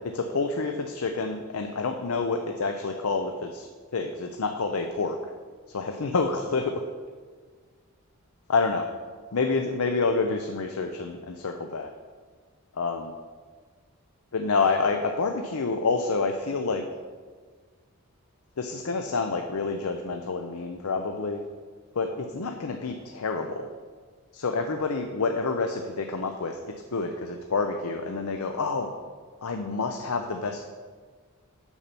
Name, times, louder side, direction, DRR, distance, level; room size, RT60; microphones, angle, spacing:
voice 1, 0.1-3.7 3.9-5.2 5.7-6.8 8.5-8.8 9.3-11.9 12.8-13.1 14.3-16.8 18.6-21.4 21.9-23.6 24.3-28.9 29.4-30.7, left 4 dB, 75° left, 4 dB, 0.6 m, -28 dB
7.1 x 5.7 x 6.8 m, 1.5 s
head